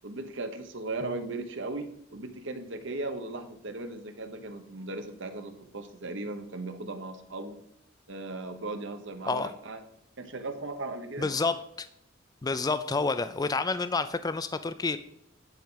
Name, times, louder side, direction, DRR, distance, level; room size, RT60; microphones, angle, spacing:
voice 1, 0.0-7.6 8.1-9.8 10.2-11.3, right 2 dB, 65° right, 7 dB, 1.1 m, -37 dB
voice 2, 9.2-9.5 11.2-11.9 12.4-15.0, left 3 dB, 20° left, 12 dB, 0.4 m, -29 dB
10.5 x 4.7 x 5.6 m, 0.76 s
head